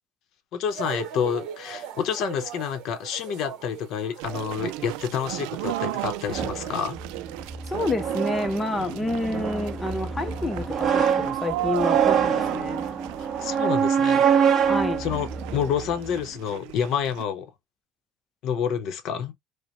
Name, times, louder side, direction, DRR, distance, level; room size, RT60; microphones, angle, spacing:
voice 1, 0.5-7.0 13.4-14.3 15.0-17.5 18.4-19.3, left 8 dB, 50° left, 0.7 m, -28 dB
sound 1, 0.7-6.9, right 8 dB, 60° right, 1.0 m, -39 dB
sound 2, 4.2-17.3, right 17 dB, 80° right, 0.3 m, -35 dB
sound 3, 6.3-16.2, right 7 dB, 30° right, 1.0 m, -25 dB
voice 2, 7.6-12.8 14.7-15.1, left 2 dB, 10° left, 0.6 m, -29 dB
5.0 x 2.1 x 2.9 m
cardioid pair, 160°, 0 cm